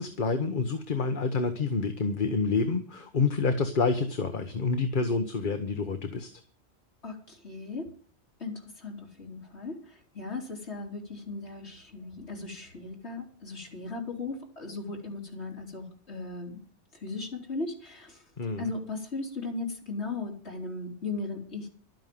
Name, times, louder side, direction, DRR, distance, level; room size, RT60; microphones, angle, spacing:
voice 1, 0.0-6.3 18.4-18.7, left 4 dB, 45° left, 7 dB, 1.3 m, -28 dB
voice 2, 7.0-7.9 8.4-16.6 17.0-18.2 18.6-21.7, left 3 dB, 70° left, 0 dB, 3.8 m, -37 dB
12.5 x 9.2 x 7.7 m, 0.43 s
omnidirectional pair, 1.2 m